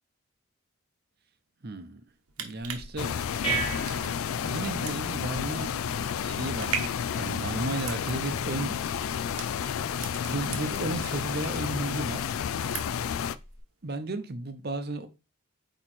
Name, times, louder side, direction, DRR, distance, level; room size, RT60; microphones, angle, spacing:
voice 1, 1.6-2.0 2.4-3.4 4.4-5.7 6.2-9.9 10.3-12.3 13.8-15.1, right 2 dB, 45° right, 0.7 m, -34 dB
sound 1, 2.1-11.1 11.4-12.2 12.5-13.1 13.5-13.6, right 7 dB, 90° right, 1.1 m, -39 dB
sound 2, 2.6-13.6, right 3 dB, 25° left, 3.0 m, -41 dB
sound 3, 3.0-13.4, left 8 dB, 70° left, 0.3 m, -31 dB
8.7 x 3.0 x 4.2 m
head